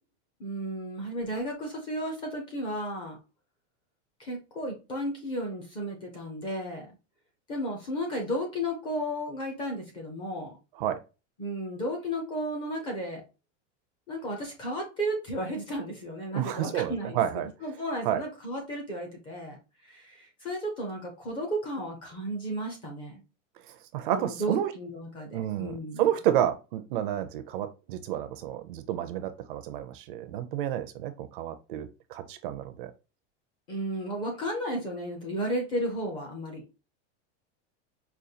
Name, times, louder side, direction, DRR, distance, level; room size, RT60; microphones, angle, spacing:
voice 1, 0.4-3.2 4.2-6.9 7.5-10.6 11.4-13.2 14.1-17.2 17.6-19.6 19.8-23.2 24.1-26.0 33.7-36.6, equal, 15° left, 0.4 m, -33 dB
voice 2, 16.3-17.5 18.0-18.2 23.7-24.7 25.3-32.9, right 11 dB, 50° right, 0.4 m, -30 dB
5.0 x 2.2 x 2.7 m
supercardioid pair, 180°, 35 cm